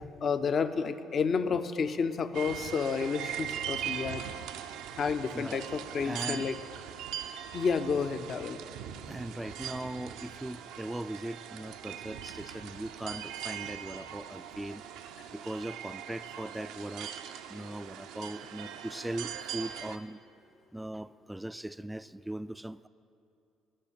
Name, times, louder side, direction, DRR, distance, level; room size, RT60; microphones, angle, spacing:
voice 1, 0.2-4.2 5.0-6.6 7.5-8.6, left 5 dB, 45° left, 10 dB, 0.6 m, -30 dB
sound 1, 2.3-20.0, right 9 dB, 65° right, 0.5 m, -41 dB
voice 2, 6.0-6.5 9.1-14.8 15.3-17.1 17.5-20.2 20.7-22.9, right 1 dB, 5° right, 15 dB, 0.4 m, -39 dB
13.0 x 6.8 x 10.0 m, 2.7 s
figure-of-eight pair, 50°, 0 cm